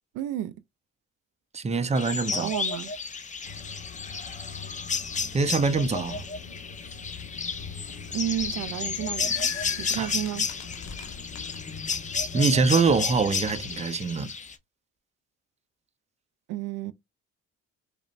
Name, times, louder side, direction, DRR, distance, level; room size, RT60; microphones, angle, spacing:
voice 1, 0.1-0.6 2.4-2.9 8.1-9.5 9.8-10.5 16.5-16.9, right 11 dB, 90° right, 0.5 m, -31 dB
voice 2, 1.5-2.5 5.3-6.2 9.9-10.1 12.3-14.3, right 4 dB, 20° right, 0.6 m, -24 dB
sound 1, 1.9-14.5, left 5 dB, 25° left, 0.5 m, -32 dB
sound 2, 3.4-13.8, left 5 dB, 45° left, 1.2 m, -43 dB
sound 3, 8.7-12.0, left 11 dB, 65° left, 0.7 m, -43 dB
5.0 x 2.2 x 2.4 m
cardioid pair, 90°, 30 cm